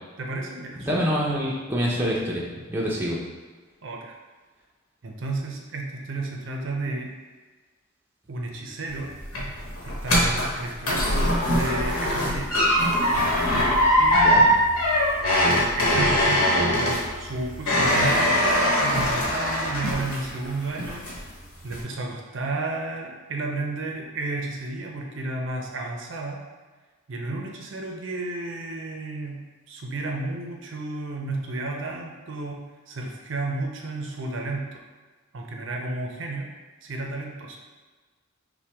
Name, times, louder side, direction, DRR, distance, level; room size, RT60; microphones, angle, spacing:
voice 1, 0.2-1.1 3.8-4.1 5.0-7.1 8.3-9.1 9.8-12.5 14.0-14.5 15.8-16.9 17.2-21.1 21.6-26.4 27.1-34.8 35.3-36.5 36.8-37.6, right 2 dB, 60° right, 1 dB, 0.5 m, -32 dB
voice 2, 0.8-3.2 14.1-14.5, equal, 10° right, -5 dB, 0.6 m, -26 dB
sound 1, 8.9-20.5 20.8-21.3 21.7-21.8, equal, 90° left, 1.1 m, -22 dB
5.7 x 2.2 x 3.4 m, 1.4 s
head